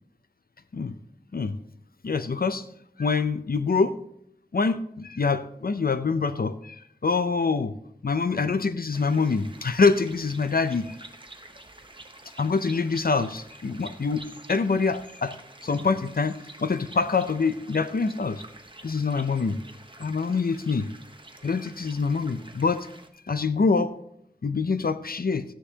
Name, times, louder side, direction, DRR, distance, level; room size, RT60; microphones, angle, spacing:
voice 1, 2.0-2.6 3.0-4.0 4.5-7.7 8.0-10.9 12.4-14.2 14.5-15.3 15.6-18.4 18.8-19.6 20.0-20.9 21.4-22.9 23.3-23.9 24.4-25.4, left 4 dB, 65° left, 11 dB, 0.6 m, -25 dB
sound 1, 8.9-23.1, right 2 dB, 30° right, 1.0 m, -48 dB
13.5 x 9.7 x 2.9 m, 0.73 s
wide cardioid pair, 55°, 17 cm